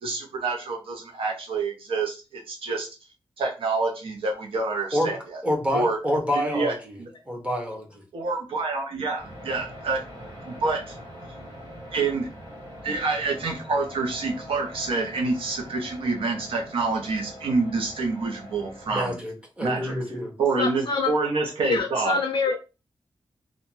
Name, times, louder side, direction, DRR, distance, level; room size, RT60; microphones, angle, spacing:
voice 1, 0.0-2.9 3.4-5.2 5.7-6.0 6.3-7.1 8.1-10.0 10.5-11.0 11.9-12.3 12.8-19.2 19.6-20.0 20.4-22.2, right 3 dB, 85° right, 1 dB, 0.6 m, -27 dB
voice 2, 5.4-7.0 7.3-8.0 18.9-20.3, equal, 15° right, 0 dB, 0.7 m, -27 dB
sound 1, 9.2-19.0, equal, 45° right, 1.1 m, -43 dB
voice 3, 20.6-21.1 21.6-22.6, left 4 dB, 75° left, 3 dB, 0.4 m, -25 dB
2.5 x 2.1 x 3.0 m, 0.30 s
wide cardioid pair, 175°, 9 cm